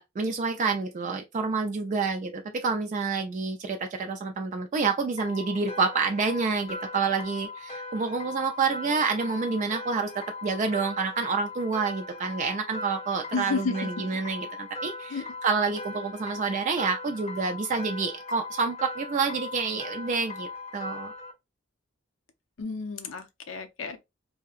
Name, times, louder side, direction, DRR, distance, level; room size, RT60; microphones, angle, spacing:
voice 1, 0.0-21.1, right 4 dB, 40° right, 0.3 m, -28 dB
sound 1, 5.2-21.3, left 2 dB, 35° left, 0.7 m, -39 dB
voice 2, 13.3-14.1 15.1-15.2 22.6-24.0, left 4 dB, 75° left, 0.6 m, -32 dB
2.8 x 2.7 x 2.4 m
head